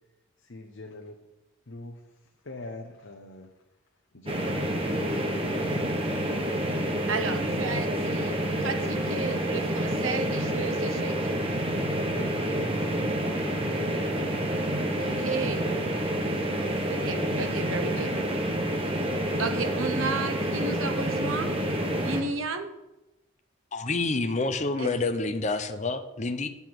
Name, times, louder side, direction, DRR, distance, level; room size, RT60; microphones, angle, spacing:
voice 1, 0.4-1.2 1.7-2.0 2.4-3.5 4.1-5.7 12.1-12.3 16.2-16.4, left 1 dB, 65° left, 2 dB, 0.9 m, -42 dB
sound 1, 4.3-22.2, right 1 dB, 25° right, 1.1 m, -28 dB
voice 2, 7.1-11.1 15.0-15.6 16.9-18.1 19.4-21.5 22.0-22.7 24.8-24.9, right 3 dB, 80° right, 7 dB, 1.0 m, -33 dB
voice 3, 23.7-26.5, left 3 dB, 35° left, 8 dB, 0.7 m, -28 dB
8.0 x 6.9 x 6.1 m, 0.95 s
head